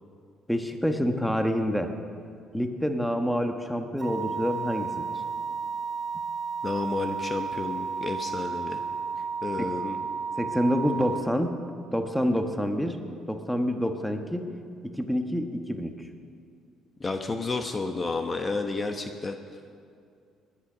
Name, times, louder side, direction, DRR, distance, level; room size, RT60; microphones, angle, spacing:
voice 1, 0.5-1.9 2.5-5.1 9.6-9.7 10.4-11.5 11.9-13.0 13.3-14.5 14.8-15.9, equal, ahead, 5 dB, 1.2 m, -27 dB
sound 1, 4.0-11.2, right 5 dB, 25° right, 3.7 m, -33 dB
voice 2, 6.6-8.8 9.4-10.0 17.0-19.4, left 3 dB, 25° left, 6 dB, 1.0 m, -31 dB
19.5 x 10.5 x 6.2 m, 2.4 s
cardioid pair, 105°, 0 cm